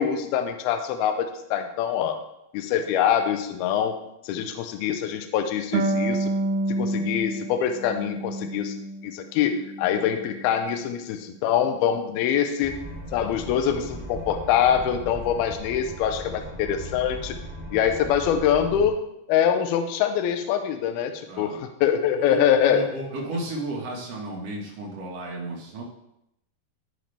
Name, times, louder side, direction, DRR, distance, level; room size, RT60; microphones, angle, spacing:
voice 1, 0.0-2.2 2.5-4.0 4.2-6.3 6.8-8.7 9.0-12.8 13.1-17.4 17.7-19.0 19.3-22.8, left 9 dB, 85° left, 7 dB, 2.2 m, -24 dB
Harp, 5.7-9.1 9.5-10.5, right 2 dB, 90° right, 3.2 m, -29 dB
sound 1, 12.6-18.9, equal, 5° right, 0.8 m, -38 dB
voice 2, 21.3-21.6 22.1-25.8, right 2 dB, 65° right, -4 dB, 1.6 m, -33 dB
13.5 x 5.2 x 3.4 m, 0.81 s
omnidirectional pair, 5.4 m